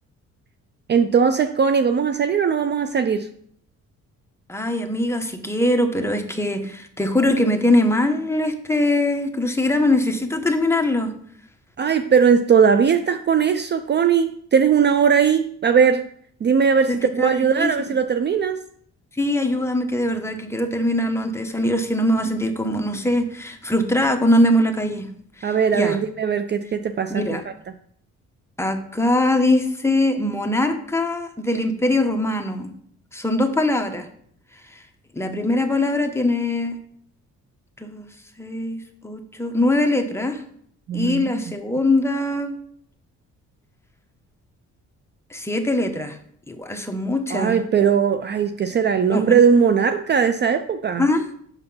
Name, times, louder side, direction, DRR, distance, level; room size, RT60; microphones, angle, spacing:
voice 1, 0.9-3.3 11.8-16.1 16.4-18.6 25.4-27.5 40.9-41.3 47.3-51.1, right 6 dB, 35° right, 10 dB, 0.4 m, -19 dB
voice 2, 4.5-11.1 16.9-17.3 17.6-17.7 19.2-25.1 25.4-26.0 27.1-27.4 28.6-32.7 33.1-34.1 35.1-36.8 37.8-38.1 38.4-40.4 40.9-42.6 45.3-46.2 46.5-47.6 49.1-49.3 51.0-51.2, left 1 dB, 10° left, 5 dB, 1.0 m, -22 dB
5.7 x 5.6 x 5.5 m, 0.64 s
cardioid pair, 90°, 30 cm